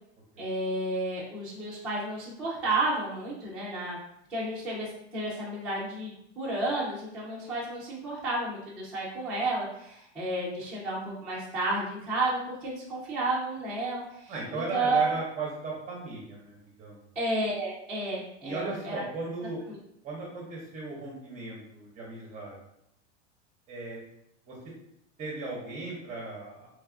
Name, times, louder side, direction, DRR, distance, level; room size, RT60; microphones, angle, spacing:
voice 1, 0.4-4.0 4.3-15.1 17.2-18.9 19.7-19.8, right 2 dB, 5° right, -10 dB, 0.3 m, -31 dB
voice 2, 14.3-17.0 18.4-19.6 20.0-22.6 23.7-24.0 24.5-24.6 25.2-26.7, right 3 dB, 20° right, -3 dB, 0.7 m, -36 dB
3.2 x 2.3 x 3.5 m, 0.76 s
supercardioid pair, 155°, 35 cm